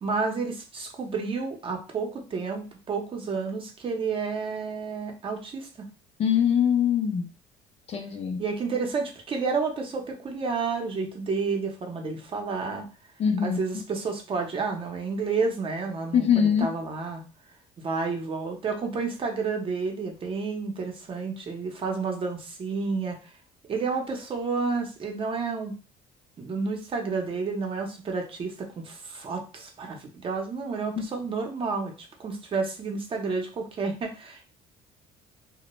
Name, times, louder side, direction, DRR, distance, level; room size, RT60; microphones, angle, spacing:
voice 1, 0.0-5.9 8.4-12.9 13.4-17.2 17.8-23.2 23.7-25.7 26.4-31.9 32.2-34.5, right 4 dB, 40° right, 0.7 m, -30 dB
voice 2, 6.2-7.3 7.9-8.4 13.2-13.6 16.1-16.7 31.0-31.1, left 8 dB, 45° left, 0.5 m, -23 dB
2.1 x 2.1 x 3.0 m
supercardioid pair, 95°, 15 cm